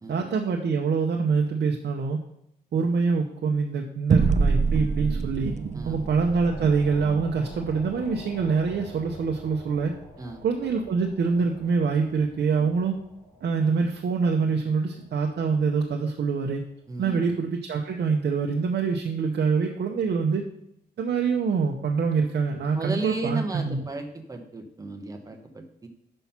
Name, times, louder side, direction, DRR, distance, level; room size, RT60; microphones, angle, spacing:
voice 1, 0.1-2.2 2.7-5.5 5.8-9.9 10.4-13.0 13.4-16.6 17.0-20.4 21.0-23.8, right 5 dB, 75° right, 1 dB, 0.8 m, -25 dB
sound 1, 4.1-8.9, right 5 dB, 40° right, 0.4 m, -27 dB
sound 2, 5.2-16.4, left 1 dB, 40° left, 3.1 m, -47 dB
voice 2, 5.7-6.1 10.2-10.4 16.9-17.3 22.7-25.9, right 3 dB, 20° right, 4 dB, 0.9 m, -35 dB
5.9 x 5.4 x 5.7 m, 0.78 s
wide cardioid pair, 165°, 17 cm